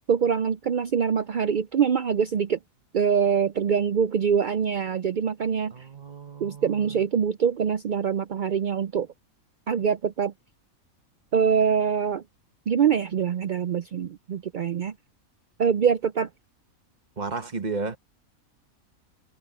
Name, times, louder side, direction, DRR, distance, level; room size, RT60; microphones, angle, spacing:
voice 1, 0.1-2.6 2.9-5.7 6.4-9.1 9.7-10.3 11.3-12.2 12.7-14.9 15.6-16.3, right 7 dB, 90° right, 0.4 m, -24 dB
voice 2, 5.7-7.0 17.2-18.0, right 4 dB, 30° right, 1.5 m, -33 dB
omnidirectional pair, 1.5 m